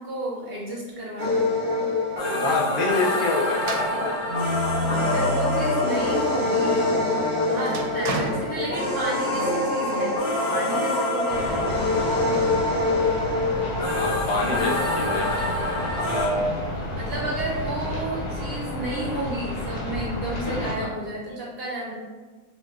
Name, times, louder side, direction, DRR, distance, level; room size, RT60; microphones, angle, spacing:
voice 1, 0.0-1.6 4.8-7.0 7.5-10.2 10.5-12.3 16.9-21.9, right 1 dB, 55° right, -4 dB, 0.7 m, -32 dB
sound 1, 1.2-16.3, left 2 dB, 20° left, 1.1 m, -25 dB
voice 2, 2.2-4.2 13.9-15.3 16.0-16.8 20.8-21.0, left 2 dB, 60° left, -2 dB, 0.5 m, -27 dB
sound 2, 3.6-6.0 6.5-9.3, equal, 85° right, 1.1 m, -31 dB
sound 3, 11.3-20.7, left 1 dB, 85° left, 1.3 m, -31 dB
5.2 x 2.6 x 2.4 m, 1.3 s
omnidirectional pair, 1.6 m